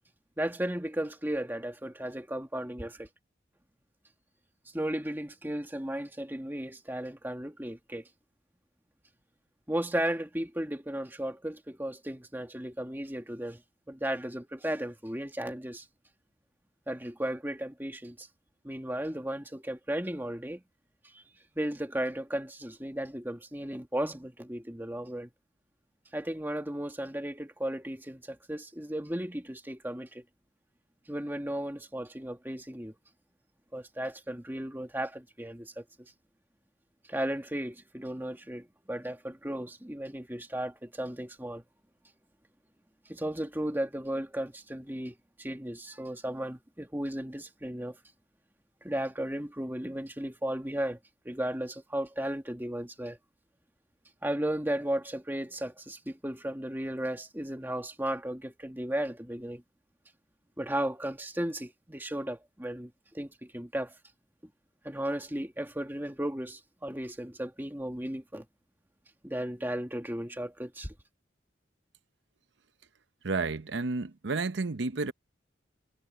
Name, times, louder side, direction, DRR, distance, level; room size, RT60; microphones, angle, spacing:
voice 1, 0.4-3.1 4.7-8.1 9.7-13.6 13.9-15.8 16.9-18.3 18.6-20.6 21.1-21.2 21.5-25.3 26.1-30.2 31.1-32.9 33.7-36.1 37.1-41.6 43.0-48.0 48.8-51.0 51.2-53.2 54.2-59.6 60.6-63.9 64.8-68.4 69.2-70.9, right 1 dB, 10° right, 1.6 m, -35 dB
voice 2, 73.2-75.1, right 3 dB, 75° right, 0.8 m, -31 dB
head